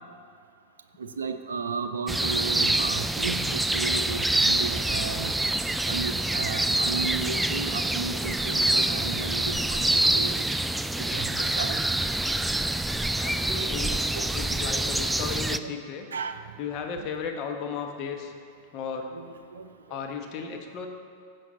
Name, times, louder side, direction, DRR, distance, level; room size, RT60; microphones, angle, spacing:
voice 1, 1.0-5.3 5.8-9.8 10.1-10.4 11.1-11.8 13.9-14.3 15.5-15.8 16.1-16.5 17.0-17.1 19.1-20.0, right 5 dB, 65° right, 8 dB, 0.5 m, -34 dB
sound 1, 2.1-15.6, right 1 dB, 5° right, 0.3 m, -26 dB
voice 2, 13.2-13.9 14.3-16.1 16.6-18.3 18.7-19.1 19.9-20.9, left 6 dB, 40° left, 3 dB, 1.2 m, -34 dB
14.5 x 7.2 x 4.1 m, 2.3 s
figure-of-eight pair, 90°, 0 cm